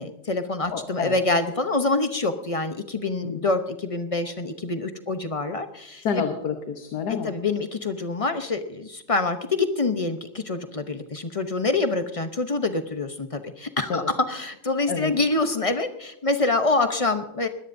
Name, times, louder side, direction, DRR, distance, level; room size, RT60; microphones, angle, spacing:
voice 1, 0.0-6.2 7.2-17.5, left 3 dB, 35° left, 8 dB, 0.5 m, -26 dB
voice 2, 0.7-1.2 3.2-3.4 6.0-7.3 13.9-14.1 14.9-15.1, left 6 dB, 80° left, 5 dB, 1.7 m, -28 dB
22.0 x 17.0 x 2.6 m, 0.82 s
omnidirectional pair, 1.7 m